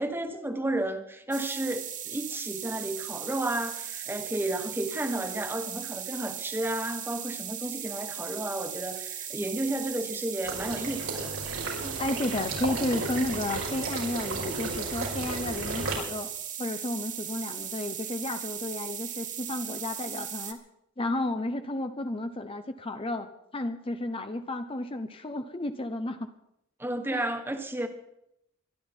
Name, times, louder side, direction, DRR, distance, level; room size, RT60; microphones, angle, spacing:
voice 1, 0.0-11.4 11.8-12.0 26.8-27.9, right 1 dB, 10° right, 7 dB, 1.4 m, -32 dB
sound 1, 1.3-20.5, right 9 dB, 40° right, 1.6 m, -38 dB
Water / Liquid, 10.4-15.9, right 2 dB, 90° right, 5.3 m, -34 dB
voice 2, 12.0-16.3 16.6-20.6 21.0-23.3 23.5-26.3 27.1-27.3, left 1 dB, 25° left, 8 dB, 0.8 m, -32 dB
23.5 x 12.0 x 4.5 m, 0.80 s
head